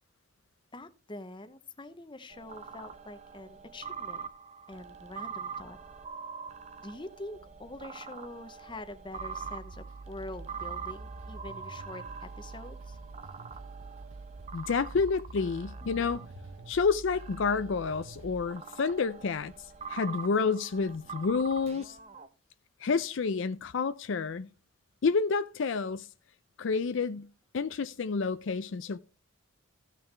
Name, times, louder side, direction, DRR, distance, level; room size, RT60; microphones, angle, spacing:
voice 1, 0.7-4.3 4.7-5.8 6.8-13.0 21.8-22.3, left 2 dB, 25° left, 0.8 m, -45 dB
sound 1, 2.3-16.7 17.1-22.3, right 5 dB, 30° right, 0.7 m, -44 dB
sound 2, 9.1-18.4, right 3 dB, 75° right, 0.7 m, -46 dB
voice 2, 14.5-16.2 16.7-19.5 19.9-22.0 22.8-24.5 25.0-26.1 26.6-27.3 27.5-29.0, left 5 dB, 65° left, 0.4 m, -29 dB
15.5 x 5.8 x 3.3 m
head